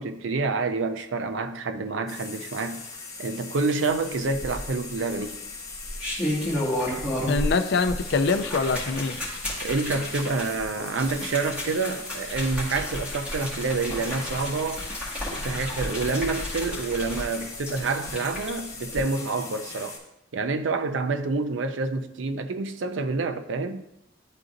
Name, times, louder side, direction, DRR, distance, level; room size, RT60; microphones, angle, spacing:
voice 1, 0.0-2.8 3.2-5.4 9.6-14.9 15.3-20.0 20.3-23.8, right 3 dB, 90° right, 0.5 m, -28 dB
sound 1, 2.1-20.0, left 4 dB, 20° left, 1.1 m, -40 dB
sound 2, 4.3-4.9 5.7-7.6 7.9-18.5 18.9-19.0, left 1 dB, 5° right, 1.7 m, -32 dB
voice 2, 7.3-9.2, left 4 dB, 60° left, 0.4 m, -24 dB
11.0 x 3.9 x 2.5 m
head